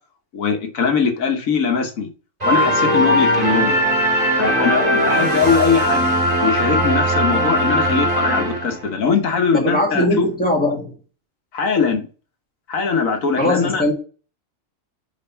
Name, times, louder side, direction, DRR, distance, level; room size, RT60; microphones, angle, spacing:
voice 1, 0.3-2.1 2.4-3.8 4.4-6.1 6.4-10.2 11.5-12.1 12.7-13.8, left 5 dB, 90° left, 1.5 m, -21 dB
sound 1, 2.4-9.0, equal, 30° right, 2.0 m, -19 dB
voice 2, 9.5-10.9 13.4-13.9, left 1 dB, 5° left, 1.7 m, -20 dB
5.4 x 3.5 x 5.6 m
omnidirectional pair, 1.4 m